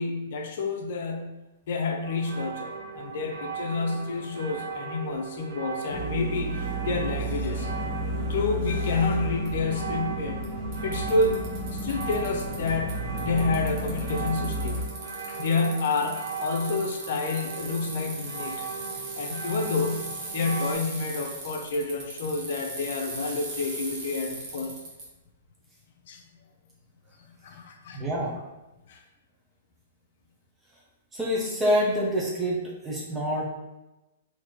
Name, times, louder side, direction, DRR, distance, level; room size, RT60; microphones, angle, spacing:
voice 1, 0.0-1.4 1.7-7.7 8.3-10.4 10.8-11.4 11.7-13.0 13.2-14.8 15.3-18.6 19.2-20.0 20.3-24.7 26.1-26.2 27.4-28.0 28.9-29.0, left 3 dB, 65° left, 3 dB, 0.7 m, -29 dB
sound 1, 2.0-20.7, right 6 dB, 75° right, 0.5 m, -38 dB
sound 2, 5.9-14.8, right 1 dB, 20° left, 1.0 m, -32 dB
Bicycle, 9.4-9.5 10.4-10.5 10.7-12.9 13.2-25.0, right 2 dB, 40° right, 1.3 m, -39 dB
voice 2, 27.9-28.3 31.1-33.4, equal, 10° right, -4 dB, 0.8 m, -26 dB
4.0 x 2.9 x 3.0 m, 1.0 s
hypercardioid pair, 145°, 0 cm